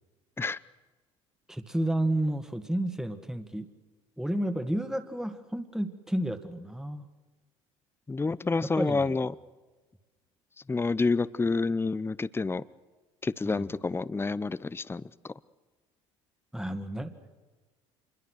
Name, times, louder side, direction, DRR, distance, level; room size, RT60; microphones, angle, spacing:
voice 1, 1.5-3.7 4.2-7.0 8.8-9.0 13.4-13.7 16.5-17.1, right 1 dB, 5° right, 7 dB, 2.1 m, -31 dB
voice 2, 8.1-9.3 10.7-12.6 13.2-15.3, left 3 dB, 15° left, 17 dB, 0.8 m, -28 dB
26.5 x 22.0 x 6.4 m, 1.2 s
hypercardioid pair, 65°, 15 cm